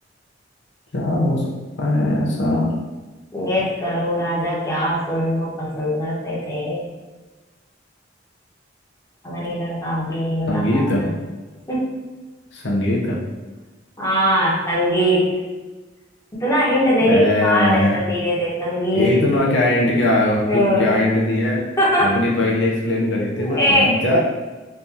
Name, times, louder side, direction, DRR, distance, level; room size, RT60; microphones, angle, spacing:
voice 1, 0.9-1.5 1.8-2.7 10.5-11.1 12.5-13.2 17.1-18.0 18.9-21.7 22.0-24.2, left 1 dB, 70° left, -3 dB, 0.7 m, -20 dB
voice 2, 3.3-6.9 9.2-11.1 11.7-11.9 14.0-15.3 16.3-19.1 20.5-20.9 21.8-22.2 23.4-24.0, equal, 15° left, -7 dB, 1.1 m, -21 dB
3.3 x 2.7 x 3.5 m, 1.2 s
head